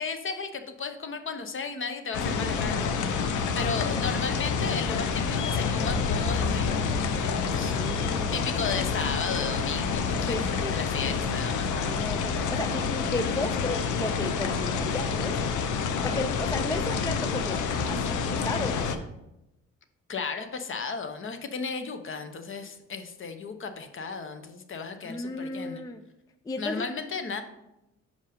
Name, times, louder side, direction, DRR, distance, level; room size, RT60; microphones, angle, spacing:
voice 1, 0.0-7.8 8.3-12.0 20.1-25.8 26.6-27.4, left 5 dB, 40° left, 7 dB, 0.8 m, -35 dB
sound 1, 2.1-19.0, left 5 dB, 75° left, 0.7 m, -28 dB
voice 2, 7.7-8.4 10.3-10.9 11.7-15.5 16.0-19.0 25.1-26.0 26.5-26.9, left 2 dB, 15° left, 7 dB, 0.4 m, -34 dB
5.2 x 5.2 x 5.1 m, 0.90 s
cardioid pair, 90°, 30 cm